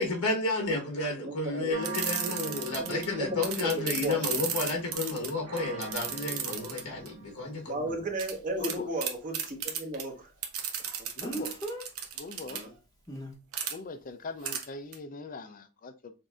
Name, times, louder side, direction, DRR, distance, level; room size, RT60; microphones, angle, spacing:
voice 1, 0.0-7.8, left 3 dB, 70° left, 1.1 m, -31 dB
voice 2, 1.2-1.7 2.2-2.4 2.8-4.2 7.7-10.3 10.8-11.1 12.5-12.7, right 1 dB, 35° right, 1.0 m, -35 dB
sound 1, 1.7-7.8, right 3 dB, 85° right, 1.5 m, -43 dB
sound 2, 1.8-3.1 3.4-7.1 8.2-8.3 8.6-8.8 9.0-10.0 10.4-12.6 13.5-13.7 14.5-14.6 14.9-15.0, right 8 dB, 65° right, 0.8 m, -34 dB
Speech, 5.9-6.0 11.2-11.8 13.1-13.3, right 1 dB, 15° left, 0.8 m, -36 dB
voice 3, 8.6-8.9 11.2-11.6 12.1-12.7 13.7-16.1, left 3 dB, 40° left, 0.5 m, -41 dB
6.1 x 2.7 x 2.4 m
head